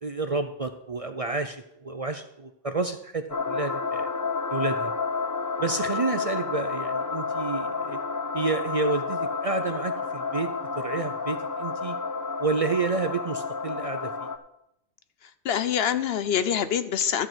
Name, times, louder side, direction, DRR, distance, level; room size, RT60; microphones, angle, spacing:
voice 1, 0.0-4.1 4.5-4.9 5.6-8.0 8.3-12.0 12.4-14.3, right 3 dB, 40° right, 7 dB, 0.5 m, -30 dB
sound 1, 3.3-14.4, left 4 dB, 25° left, 0.5 m, -30 dB
voice 2, 15.2-17.3, left 8 dB, 65° left, 12 dB, 0.9 m, -26 dB
13.0 x 4.5 x 7.9 m, 0.81 s
omnidirectional pair, 1.2 m